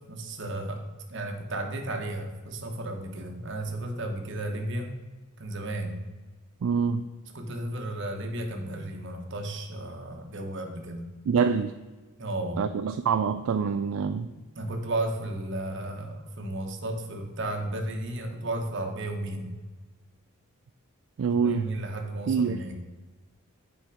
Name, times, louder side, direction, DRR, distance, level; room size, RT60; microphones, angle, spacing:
voice 1, 0.0-4.9 5.4-6.1 7.3-11.1 12.2-12.6 14.5-19.6 21.3-22.8, right 1 dB, 55° right, 3 dB, 1.2 m, -34 dB
voice 2, 6.6-7.0 11.3-11.7 12.6-14.3 21.2-21.7 22.3-22.6, right 6 dB, 70° right, 9 dB, 0.3 m, -25 dB
8.5 x 4.6 x 4.9 m, 1.3 s
head